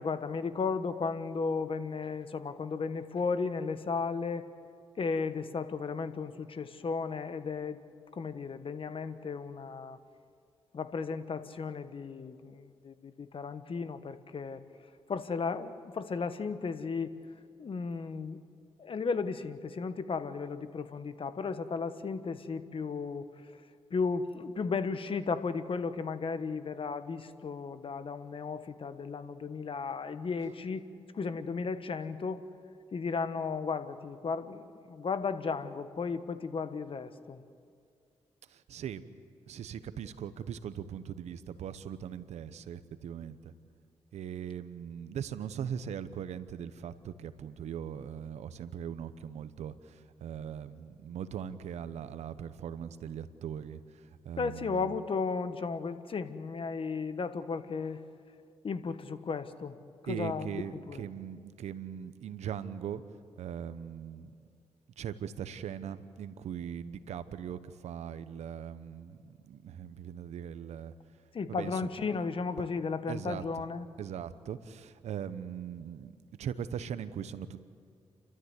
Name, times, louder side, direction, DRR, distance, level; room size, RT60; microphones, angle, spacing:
voice 1, 0.0-4.5 5.0-7.8 8.1-10.0 10.7-14.6 15.1-17.1 17.6-18.4 18.8-23.3 23.9-30.9 31.1-32.4 32.9-37.4 54.4-58.0 58.6-59.8 60.0-61.0 71.3-73.9, left 5 dB, 55° left, 11 dB, 1.3 m, -34 dB
voice 2, 38.5-39.0 39.5-43.5 44.1-54.9 60.1-63.0 63.4-64.3 65.0-70.9 71.5-71.8 73.1-73.4 74.0-76.1 76.4-77.6, right 8 dB, 85° right, 13 dB, 0.9 m, -40 dB
30.0 x 13.0 x 8.2 m, 2.3 s
cardioid pair, 65°, 11 cm